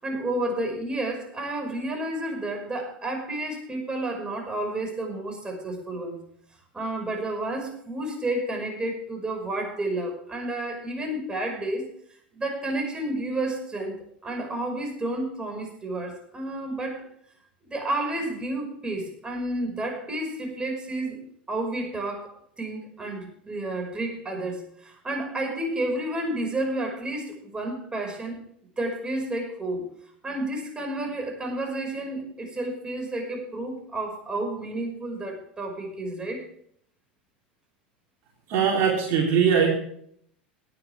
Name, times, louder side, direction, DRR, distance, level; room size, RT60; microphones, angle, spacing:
voice 1, 0.0-6.2 6.7-11.9 12.3-14.0 14.2-17.0 17.6-21.2 21.5-28.4 28.8-29.8 30.2-36.4, right 1 dB, 15° right, 1 dB, 5.7 m, -31 dB
voice 2, 38.5-39.7, right 7 dB, 50° right, -2 dB, 3.5 m, -21 dB
18.0 x 10.5 x 3.6 m, 0.66 s
hypercardioid pair, 85°, 6 cm